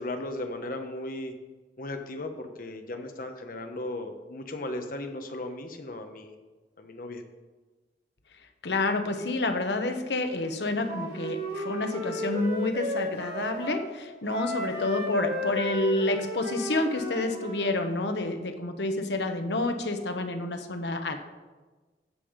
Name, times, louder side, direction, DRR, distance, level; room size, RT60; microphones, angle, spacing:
voice 1, 0.0-1.3 1.8-6.3 6.8-7.2, left 1 dB, 50° left, 6 dB, 1.1 m, -36 dB
voice 2, 8.6-21.2, left 2 dB, 75° left, 6 dB, 1.1 m, -29 dB
Wind instrument woodwind instrument, 10.8-13.8 14.3-17.7, left 1 dB, 75° right, 3.4 m, -34 dB
14.0 x 5.6 x 5.2 m, 1.3 s
head